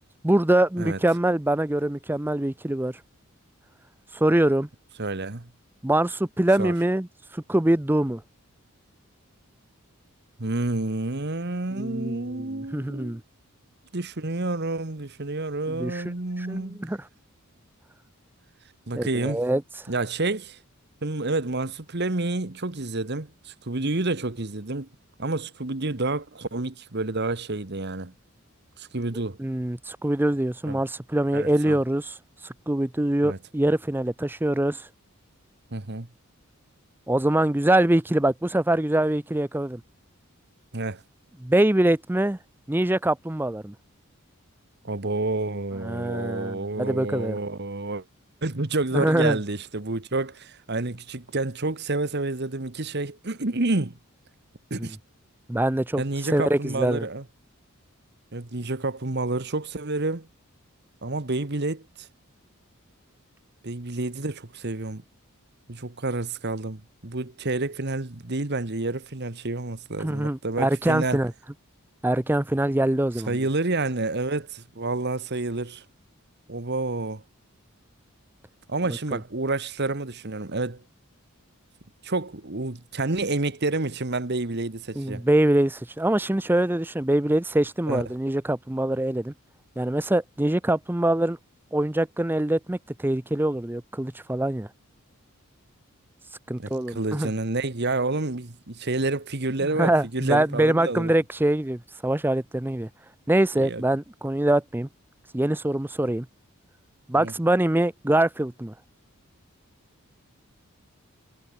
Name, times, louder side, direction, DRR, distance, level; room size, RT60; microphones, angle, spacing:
voice 1, 0.2-3.0 4.1-4.7 5.8-7.1 7.3-8.2 11.7-13.2 15.7-16.0 16.4-17.0 18.9-19.6 29.4-32.2 32.4-34.9 37.1-39.8 41.4-42.4 42.7-43.7 45.8-47.4 48.9-49.4 54.8-54.9 55.5-56.0 56.3-57.1 70.0-71.3 72.0-73.4 79.1-79.2 85.0-89.3 89.8-91.4 91.7-94.7 96.5-97.3 99.7-102.9 103.3-104.9 105.3-106.3 107.1-108.7, right 1 dB, 10° right, 0.6 m, -24 dB
voice 2, 5.0-5.5 6.6-6.7 10.4-13.2 13.9-16.8 18.9-19.4 19.9-20.6 21.0-24.9 25.2-28.1 28.8-29.4 30.6-30.8 31.3-31.8 33.2-33.4 35.7-36.1 40.7-41.0 44.8-48.0 48.4-54.0 54.7-55.0 56.0-57.2 58.3-60.3 61.0-62.1 63.6-65.0 65.7-71.2 73.3-75.8 76.5-77.2 78.7-80.8 82.0-85.2 87.9-88.0 96.6-101.1 103.6-103.8 107.2-107.3, right 2 dB, 50° right, 1.4 m, -29 dB
head